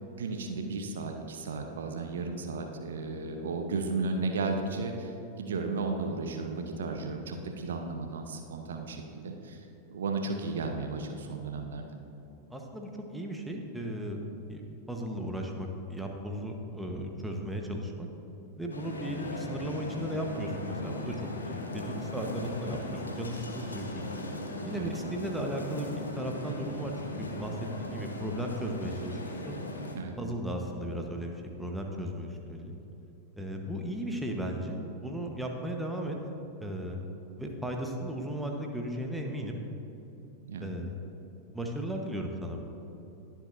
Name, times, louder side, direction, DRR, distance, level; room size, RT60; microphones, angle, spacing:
voice 1, 0.1-11.9 24.7-24.9 29.9-30.1 40.4-40.7, right 3 dB, 65° right, 4 dB, 0.9 m, -34 dB
voice 2, 12.5-14.2 14.5-18.1 18.6-21.2 21.4-24.0 24.6-29.2 29.5-29.6 30.2-32.7 33.4-36.2 36.6-37.0 37.4-39.6 40.6-41.0 41.5-42.6, equal, 5° right, 1 dB, 1.2 m, -36 dB
sound 1, 18.7-29.9, left 1 dB, 75° left, 1.1 m, -39 dB
20.5 x 7.5 x 2.7 m, 3.0 s
figure-of-eight pair, 90°, 0 cm